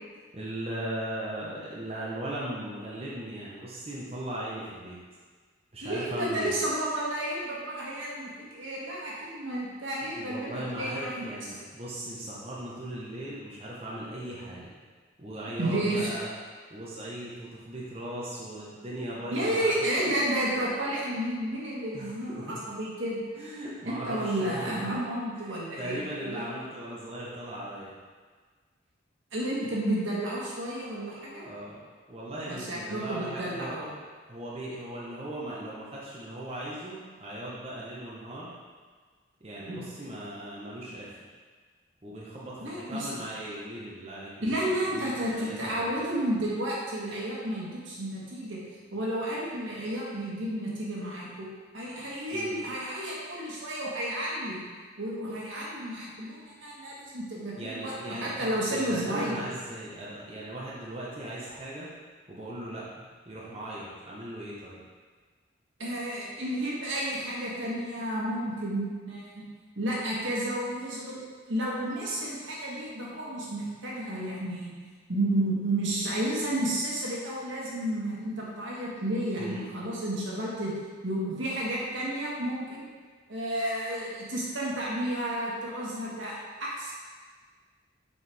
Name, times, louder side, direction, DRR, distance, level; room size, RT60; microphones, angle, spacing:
voice 1, 0.3-5.0 5.7-6.6 10.0-14.7 15.2-16.3 16.7-20.1 21.9-22.6 23.4-24.8 25.3-27.9 31.4-31.8 32.1-33.9 34.3-38.5 39.4-41.2 42.0-45.9 52.3-52.6 57.6-61.9 62.3-64.8 79.4-79.7, right 1 dB, 30° right, -7 dB, 1.0 m, -38 dB
voice 2, 5.8-11.2 15.6-16.1 19.3-23.2 23.8-26.5 29.3-31.4 32.5-33.9 39.6-39.8 42.6-43.2 44.4-48.6 48.9-51.5 51.7-54.6 55.0-59.4 65.8-69.4 69.7-74.7 75.1-80.7 81.0-82.9 83.3-86.9, right 1 dB, 80° right, -5 dB, 1.6 m, -31 dB
6.9 x 4.5 x 3.5 m, 1.5 s
head